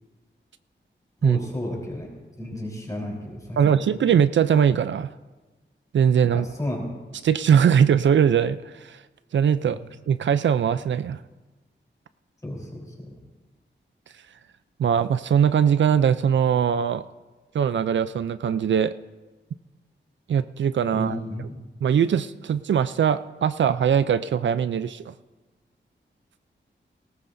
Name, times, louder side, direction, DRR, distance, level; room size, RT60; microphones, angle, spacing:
voice 1, 1.2-2.1 2.4-3.9 6.3-6.9 12.4-13.1 20.9-21.6, left 1 dB, 20° left, -1 dB, 3.7 m, -33 dB
voice 2, 3.6-5.1 5.9-6.5 7.2-9.0 9.3-9.8 10.1-11.2 14.8-17.0 17.5-18.9 20.3-21.2 21.8-25.1, right 8 dB, 70° right, 13 dB, 0.4 m, -21 dB
19.0 x 18.0 x 2.6 m, 1.2 s
wide cardioid pair, 150°, 20 cm